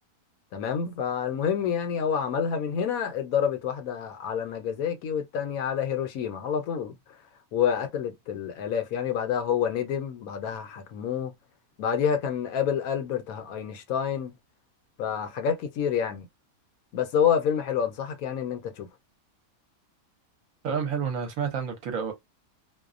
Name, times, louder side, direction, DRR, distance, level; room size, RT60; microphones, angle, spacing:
voice 1, 0.5-6.9 7.5-11.3 11.8-14.3 15.0-16.3 16.9-18.9, left 8 dB, 70° left, 0.9 m, -28 dB
voice 2, 20.6-22.1, right 7 dB, 65° right, 1.0 m, -29 dB
2.6 x 2.0 x 2.4 m
omnidirectional pair, 1.6 m